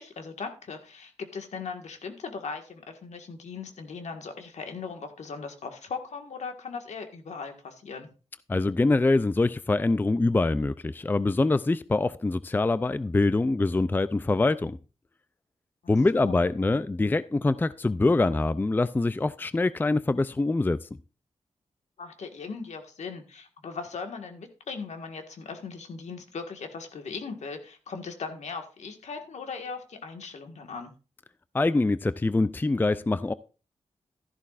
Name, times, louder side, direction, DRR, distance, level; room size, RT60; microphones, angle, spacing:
voice 1, 0.0-8.1 15.8-16.4 22.0-30.9, left 5 dB, 75° left, 1.7 m, -39 dB
voice 2, 8.5-14.8 15.9-20.8 31.5-33.3, left 2 dB, 15° left, 0.4 m, -24 dB
13.0 x 11.0 x 2.5 m
cardioid pair, 75°, 12 cm